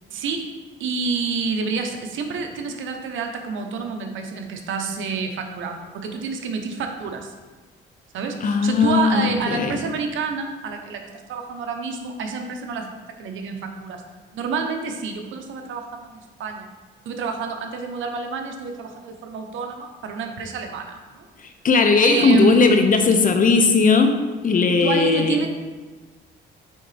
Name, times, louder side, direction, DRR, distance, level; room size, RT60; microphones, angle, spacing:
voice 1, 0.1-0.5 0.8-7.3 8.1-12.9 13.2-14.0 14.3-16.7 17.1-21.3 22.0-22.7 24.7-25.5, right 5 dB, 80° right, 5 dB, 0.9 m, -28 dB
voice 2, 8.4-9.8 21.6-25.5, left 4 dB, 45° left, 6 dB, 0.7 m, -18 dB
8.7 x 3.7 x 3.4 m, 1.3 s
cardioid pair, 90°, 20 cm